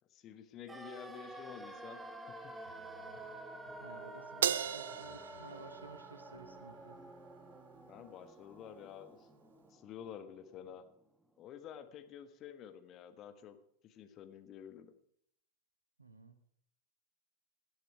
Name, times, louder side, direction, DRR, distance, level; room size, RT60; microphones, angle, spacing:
voice 1, 0.1-2.6 7.9-9.3 9.7-10.8 11.4-13.6 13.8-14.9, left 9 dB, 35° left, 9 dB, 1.3 m, -50 dB
sound 1, 0.7-10.6 10.9-11.0, right 2 dB, 10° right, 1.3 m, -50 dB
sound 2, 2.6-8.0, right 1 dB, 80° left, 2.2 m, -63 dB
voice 2, 3.8-7.0 16.0-16.4, right 3 dB, 80° right, 10 dB, 1.2 m, -54 dB
Crash cymbal, 4.4-6.9, right 9 dB, 60° right, 0.4 m, -37 dB
17.5 x 10.5 x 4.8 m, 0.69 s
figure-of-eight pair, 90°, 0 cm